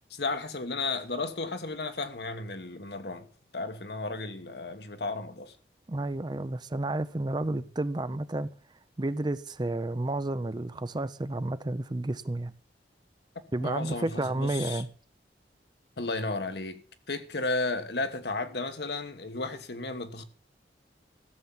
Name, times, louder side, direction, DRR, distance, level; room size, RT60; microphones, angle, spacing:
voice 1, 0.1-3.3 3.5-5.5 7.5-7.6 13.6-14.8 16.0-16.8 17.1-20.2, left 3 dB, 65° left, 1.4 m, -33 dB
voice 2, 5.9-8.5 9.0-12.5 13.5-14.9, right 2 dB, 25° right, 0.5 m, -31 dB
14.0 x 7.2 x 7.1 m
head